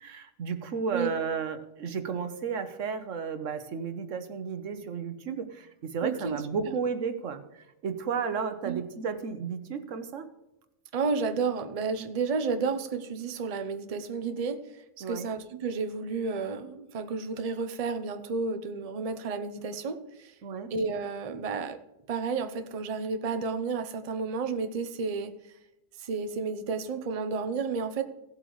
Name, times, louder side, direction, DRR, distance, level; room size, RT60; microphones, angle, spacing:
voice 1, 0.0-7.4 7.8-10.3 15.0-15.3 20.4-20.7, right 5 dB, 85° right, 9 dB, 1.3 m, -33 dB
voice 2, 6.0-6.8 8.6-8.8 10.9-20.3 20.7-21.8 22.1-25.3 26.0-28.0, right 4 dB, 35° right, 9 dB, 0.7 m, -32 dB
17.0 x 7.9 x 3.2 m, 0.93 s
omnidirectional pair, 1.3 m